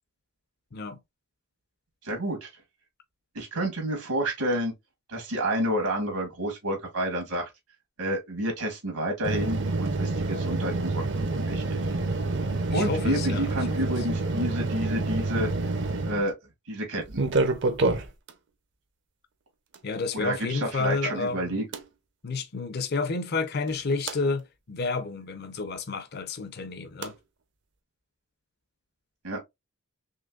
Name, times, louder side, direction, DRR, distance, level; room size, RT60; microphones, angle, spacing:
voice 1, 2.0-2.5 3.3-4.7 5.1-7.5 8.0-11.8 12.7-15.5 16.0-16.3 16.7-17.2 20.1-21.6 29.2-29.4, right 1 dB, 80° right, 1.6 m, -29 dB
sound 1, 9.2-16.3 17.1-18.3 19.7-19.8 21.7-21.8 23.7-24.2 27.0-27.1, right 2 dB, 50° right, 0.6 m, -28 dB
voice 2, 12.7-13.6 19.8-21.6 22.2-27.2, left 3 dB, 45° left, 0.5 m, -30 dB
3.8 x 3.1 x 2.3 m
head